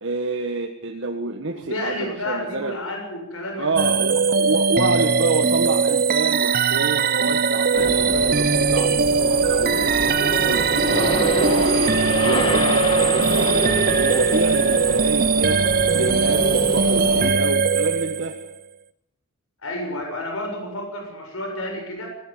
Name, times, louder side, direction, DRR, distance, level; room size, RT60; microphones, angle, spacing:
voice 1, 0.0-2.8 3.6-10.1 10.4-12.0 12.2-15.6 15.9-18.4, right 2 dB, 65° right, 3 dB, 1.6 m, -28 dB
voice 2, 1.5-3.7 19.6-22.1, left 1 dB, 90° left, 2 dB, 6.9 m, -30 dB
sound 1, 3.8-18.5, right 5 dB, 45° right, 0.7 m, -20 dB
sound 2, 7.7-17.3, left 1 dB, 25° left, 2.0 m, -27 dB
19.0 x 17.5 x 9.2 m, 0.89 s
head